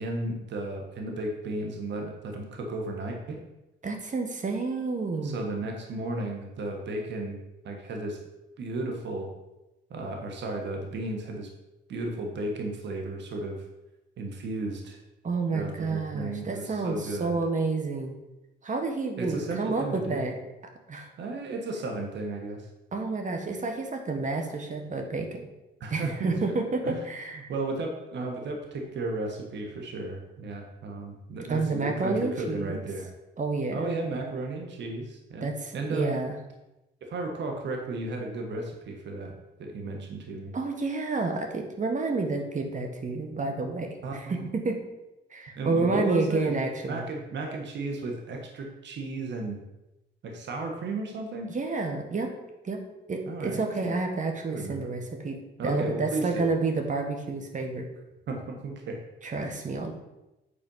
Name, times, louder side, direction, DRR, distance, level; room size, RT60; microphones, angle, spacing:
voice 1, 0.0-3.4 5.2-7.4 7.6-8.2 8.6-9.3 9.9-11.5 11.9-13.6 14.2-15.0 15.5-17.3 19.2-20.2 21.2-22.7 25.8-26.3 26.8-27.0 27.4-33.1 33.7-36.2 37.0-39.3 39.6-40.5 44.0-44.5 45.5-46.5 46.9-49.6 50.2-51.5 53.3-54.0 54.5-54.9 55.6-56.5 58.3-59.0, right 2 dB, 65° right, 2 dB, 1.5 m, -34 dB
voice 2, 3.8-5.5 15.2-18.2 18.6-20.4 20.9-21.1 22.9-25.5 25.9-27.5 31.5-32.8 33.4-34.0 35.4-36.4 40.5-44.8 45.3-47.0 51.5-52.3 52.6-52.8 53.1-55.4 55.6-57.9 59.2-59.9, right 3 dB, 40° right, 4 dB, 1.5 m, -29 dB
8.4 x 4.3 x 5.5 m, 0.97 s
cardioid pair, 90°, 20 cm